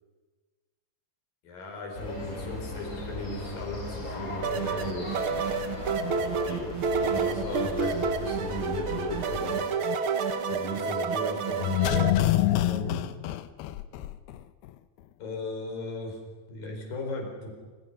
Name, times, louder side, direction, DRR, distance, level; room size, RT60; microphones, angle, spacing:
voice 1, 1.4-5.1 6.2-6.7 7.0-9.6 10.5-13.0 15.2-16.2 16.5-17.5, left 2 dB, 65° left, 1 dB, 6.4 m, -36 dB
sound 1, 1.9-9.6, left 1 dB, 20° left, 4.1 m, -38 dB
sound 2, 4.4-12.1, right 5 dB, 55° right, 1.5 m, -29 dB
sound 3, 11.5-14.4 14.7-14.8, left 13 dB, 85° left, 2.8 m, -26 dB
27.0 x 26.5 x 5.6 m, 1.4 s
omnidirectional pair, 4.4 m